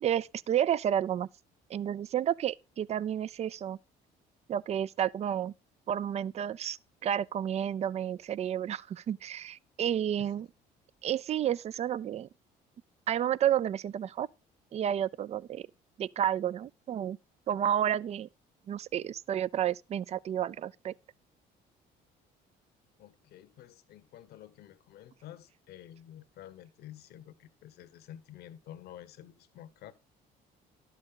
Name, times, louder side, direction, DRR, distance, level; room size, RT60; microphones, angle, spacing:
voice 1, 0.0-1.3 1.7-3.8 4.5-5.5 5.9-10.5 11.0-12.3 13.1-14.3 14.7-15.7 16.0-17.2 17.5-18.3 18.7-20.9, right 10 dB, 40° right, 0.4 m, -31 dB
voice 2, 23.0-29.9, left 11 dB, 70° left, 1.2 m, -50 dB
11.5 x 7.5 x 3.8 m
cardioid pair, 110°, 17 cm